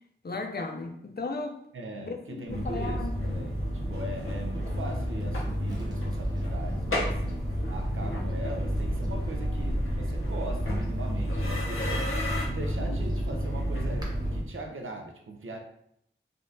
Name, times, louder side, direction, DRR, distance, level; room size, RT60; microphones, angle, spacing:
voice 1, 0.2-1.6 2.0-3.2, left 3 dB, 50° left, 0.5 m, -35 dB
voice 2, 1.7-7.2 7.7-12.1 12.4-15.6, right 2 dB, 80° right, 0.5 m, -40 dB
sound 1, 2.5-14.4, equal, 90° left, 0.8 m, -30 dB
sound 2, 4.4-14.5, equal, 20° right, 0.8 m, -40 dB
3.5 x 2.3 x 2.7 m
wide cardioid pair, 50°, 21 cm